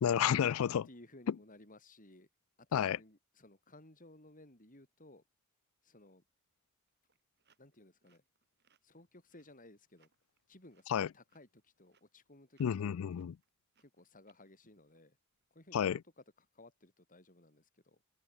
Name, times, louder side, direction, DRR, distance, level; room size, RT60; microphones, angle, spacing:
voice 1, 0.0-0.9 1.3-1.4 2.7-3.0 10.9-11.1 12.6-13.4 15.7-16.0, left 8 dB, 80° left, 0.4 m, -31 dB
voice 2, 0.9-2.3 2.6-5.2 5.8-6.2 7.6-8.2 8.8-10.1 10.5-12.9 13.8-15.2 15.5-15.9 16.2-18.0, left 1 dB, 40° left, 7.3 m, -59 dB
sound 1, 6.9-15.5, right 6 dB, 55° right, 7.2 m, -76 dB
open air
head